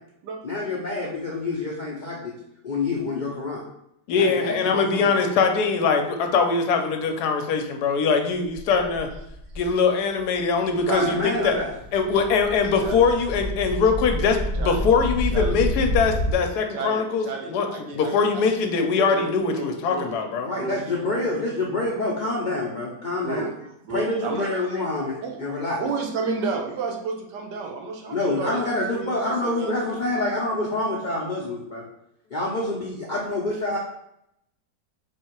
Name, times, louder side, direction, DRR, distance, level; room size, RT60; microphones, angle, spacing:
voice 1, 0.4-2.3 2.6-3.6 4.1-5.1 10.7-11.7 20.4-23.5 23.9-25.8 28.1-31.8 32.3-33.8, left 2 dB, 90° left, -3 dB, 0.4 m, -27 dB
voice 2, 4.1-9.1 9.6-11.6 11.9-20.5, left 5 dB, 75° left, 5 dB, 1.1 m, -22 dB
sound 1, 8.5-9.7 10.3-10.4 10.7-16.3, equal, 45° right, 1.3 m, -29 dB
voice 3, 10.9-11.6 12.8-13.0 14.6-14.9 15.3-15.6 16.7-18.4 19.1-20.1 20.5-21.1 23.2-23.5 23.8-24.5 25.2-25.4 25.8-28.6 28.9-29.1 29.4-29.7, right 4 dB, 80° right, 2 dB, 1.4 m, -31 dB
4.3 x 2.8 x 4.4 m, 0.78 s
omnidirectional pair, 1.8 m